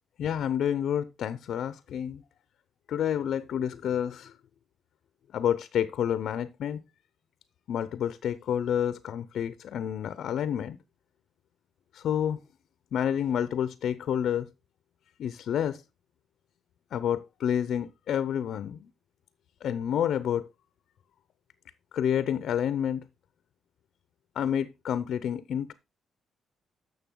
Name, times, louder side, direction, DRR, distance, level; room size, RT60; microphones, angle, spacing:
voice 1, 0.2-2.2 2.9-4.3 5.3-6.8 7.7-10.8 11.9-12.4 12.9-14.5 15.2-15.8 16.9-18.9 19.6-20.5 21.9-23.1 24.4-25.7, left 9 dB, 70° left, 0.6 m, -29 dB
11.5 x 6.6 x 3.8 m
cardioid pair, 90°, 0 cm